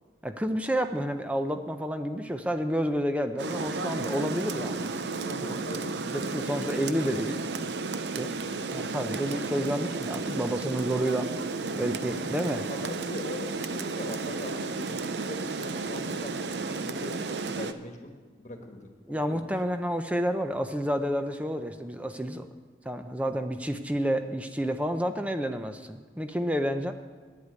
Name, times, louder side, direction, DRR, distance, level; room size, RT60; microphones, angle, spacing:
voice 1, 0.2-4.9 5.4-5.6 6.0-7.4 8.1-8.3 8.7-11.3 11.7-12.7 19.1-22.5 22.8-26.9, equal, 10° right, 7 dB, 0.5 m, -30 dB
Rain, 3.4-17.7, right 3 dB, 75° right, 0.6 m, -33 dB
voice 2, 5.2-5.9 12.7-19.6, left 1 dB, 40° left, 4 dB, 1.3 m, -41 dB
9.8 x 8.4 x 9.4 m, 1.5 s
head